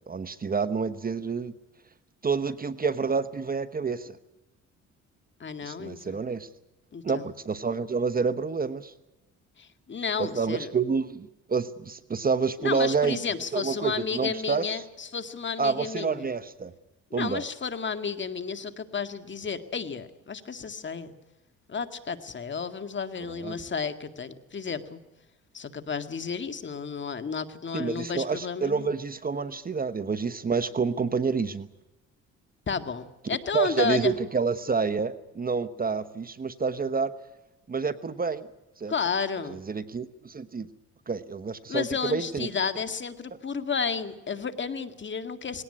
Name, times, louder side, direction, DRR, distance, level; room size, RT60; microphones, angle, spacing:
voice 1, 0.1-1.5 2.2-4.2 5.6-6.5 7.0-8.9 10.2-13.2 13.5-14.7 15.6-16.7 17.1-17.4 23.3-23.5 27.7-31.7 33.5-37.1 37.7-38.5 38.8-38.9 39.5-40.7 41.1-42.5, right 5 dB, 30° right, 13 dB, 1.0 m, -28 dB
voice 2, 5.4-6.2 6.9-7.3 9.6-10.7 12.6-16.3 17.1-21.1 21.7-25.0 25.5-28.9 32.7-34.1 38.9-39.6 41.7-45.6, left 6 dB, 40° left, 9 dB, 2.0 m, -32 dB
20.5 x 18.0 x 9.8 m, 1.0 s
cardioid pair, 90°, 30 cm